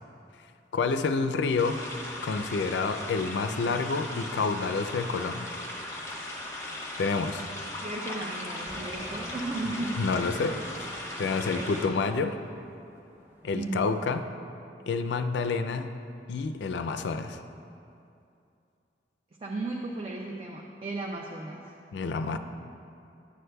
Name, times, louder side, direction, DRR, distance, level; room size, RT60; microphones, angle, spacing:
voice 1, 0.7-1.8 2.2-5.6 7.0-7.4 10.0-12.4 13.4-14.2 14.9-15.9 16.3-17.4 21.9-22.4, left 4 dB, 80° left, 8 dB, 0.4 m, -29 dB
sound 1, 1.6-11.9, left 1 dB, 15° left, 0.8 m, -38 dB
voice 2, 7.8-10.0 11.5-11.7 13.5-14.0 19.4-21.7, right 2 dB, 35° right, 0 dB, 0.4 m, -35 dB
sound 2, 8.7-13.9, equal, 15° right, 0.9 m, -48 dB
10.0 x 7.9 x 2.2 m, 2.6 s
head